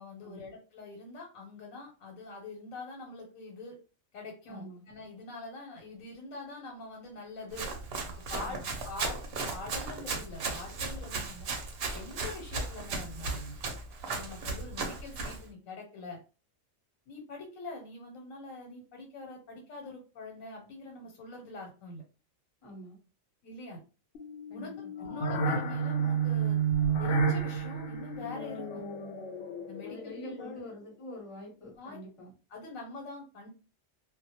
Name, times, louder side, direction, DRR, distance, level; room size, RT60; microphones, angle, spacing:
voice 1, 0.0-3.8 4.1-7.7 8.3-11.5 11.9-13.6 14.1-16.2 17.1-22.0 23.4-23.8 24.5-26.6 27.0-28.8 29.7-30.6 31.8-32.0 32.5-33.5, left 3 dB, 85° left, 1 dB, 1.1 m, -44 dB
voice 2, 4.5-4.8 8.4-8.7 22.6-23.0 24.5-25.4 29.9-32.3, left 1 dB, 30° left, -1 dB, 0.7 m, -46 dB
Run, 7.5-15.4, right 3 dB, 60° right, 0.7 m, -36 dB
sound 1, 24.1-30.5, right 5 dB, 65° left, 0.8 m, -31 dB
2.1 x 2.1 x 2.7 m, 0.35 s
omnidirectional pair, 1.4 m